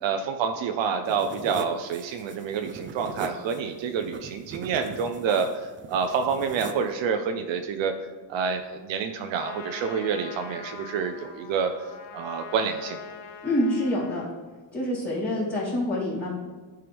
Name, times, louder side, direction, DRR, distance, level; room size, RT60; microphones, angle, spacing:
voice 1, 0.0-5.5 5.9-7.9 8.3-11.7 12.1-13.0, right 6 dB, 70° right, 5 dB, 0.7 m, -28 dB
sound 1, 1.0-6.9, right 4 dB, 25° right, 0.4 m, -40 dB
Trumpet, 9.3-14.3, left 6 dB, 90° left, 1.1 m, -43 dB
voice 2, 13.4-14.2 14.7-16.3, left 1 dB, 20° left, -8 dB, 2.6 m, -26 dB
13.0 x 4.6 x 3.4 m, 1.3 s
cardioid pair, 130°, 46 cm